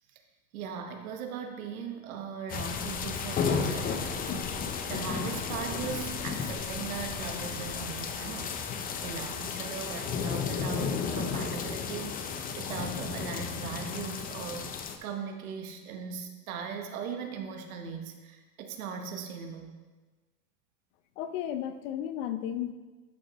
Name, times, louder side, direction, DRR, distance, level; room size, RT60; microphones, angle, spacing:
voice 1, 0.5-19.7, right 6 dB, 80° right, 4 dB, 1.1 m, -39 dB
sound 1, 2.5-15.0, left 6 dB, 20° left, 0.5 m, -33 dB
voice 2, 21.2-22.7, left 10 dB, 70° left, 10 dB, 0.7 m, -33 dB
11.5 x 5.6 x 3.0 m, 1.3 s
supercardioid pair, 120°, 42 cm